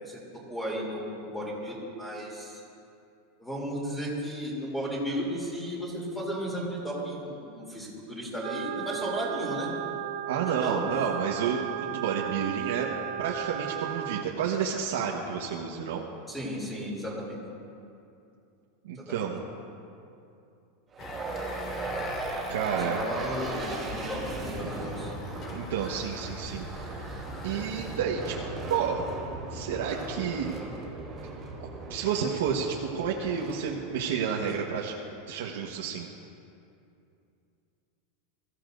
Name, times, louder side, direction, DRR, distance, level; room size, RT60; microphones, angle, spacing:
voice 1, 0.0-2.6 3.4-9.7 10.4-10.9 16.3-17.4 18.9-19.2 22.8-25.1, equal, 5° left, -4 dB, 3.0 m, -34 dB
sound 1, 8.4-14.2, right 12 dB, 60° right, 0.5 m, -35 dB
voice 2, 10.3-12.9 13.2-16.1 18.8-19.4 22.5-23.0 25.5-26.6 27.4-28.3 28.7-29.0 29.5-30.5 31.9-34.9 35.3-36.1, right 7 dB, 90° right, -2 dB, 1.2 m, -30 dB
sound 2, 20.9-35.1, right 3 dB, 15° right, 2.9 m, -37 dB
sound 3, 21.0-28.0, left 4 dB, 25° left, 0.9 m, -43 dB
22.5 x 14.5 x 2.6 m, 2.6 s
supercardioid pair, 165°, 0 cm